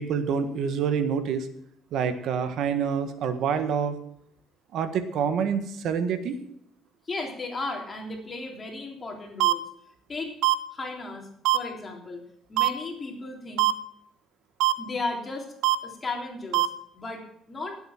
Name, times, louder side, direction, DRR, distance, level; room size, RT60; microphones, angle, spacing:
voice 1, 0.0-1.5 1.9-4.0 4.7-6.4, right 7 dB, 70° right, 9 dB, 1.6 m, -27 dB
voice 2, 7.0-9.6 10.1-10.3 10.7-12.2 12.5-13.7 14.8-15.5 15.8-17.8, left 3 dB, 25° left, 1 dB, 3.4 m, -35 dB
sound 1, 9.4-9.5 10.4-10.5 11.4-11.6 12.6-12.7 13.6-13.7 14.6-14.7 15.6-15.8 16.5-16.7, right 17 dB, 85° right, 0.7 m, -20 dB
18.0 x 8.2 x 5.9 m, 0.71 s
cardioid pair, 120°, 0 cm